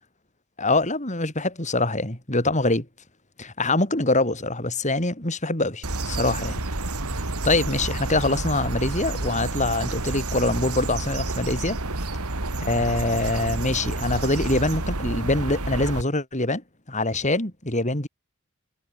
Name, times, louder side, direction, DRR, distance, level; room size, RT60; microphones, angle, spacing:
voice 1, 0.6-2.9 3.4-6.6 7.4-11.8 12.6-18.1, left 2 dB, 35° left, 5.0 m, -24 dB
sound 1, 5.8-16.0, right 2 dB, 90° right, 2.9 m, -29 dB
head